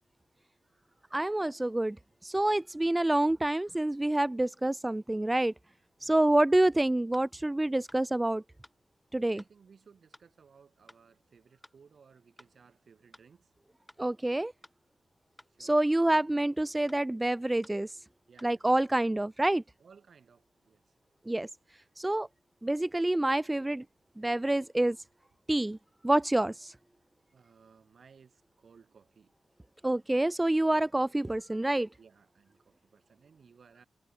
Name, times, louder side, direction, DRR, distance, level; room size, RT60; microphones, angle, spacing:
voice 1, 1.1-2.0 2.2-5.5 6.0-8.4 9.1-9.4 14.0-14.5 15.6-18.0 18.4-19.6 21.3-21.5 22.0-22.3 22.6-23.8 24.2-25.0 25.5-25.8 26.0-26.7 29.8-31.9, right 1 dB, 20° right, 0.4 m, -27 dB
sound 1, 7.1-7.3 7.9-8.0 8.6-8.8 9.4-9.5 10.1-10.3 10.9-11.0 11.6-11.8 12.4-12.5 13.1-13.3 13.9-14.0 14.6-14.8 15.4-15.5 16.1-16.3 16.9-17.0 17.6-17.8 18.4-18.5, left 1 dB, 10° left, 5.9 m, -56 dB
voice 2, 9.3-13.5 15.5-15.8 18.3-18.7 19.8-20.8 23.2-23.3 27.3-29.3 32.0-33.9, right 6 dB, 65° right, 7.0 m, -60 dB
supercardioid pair, 40°, 0 cm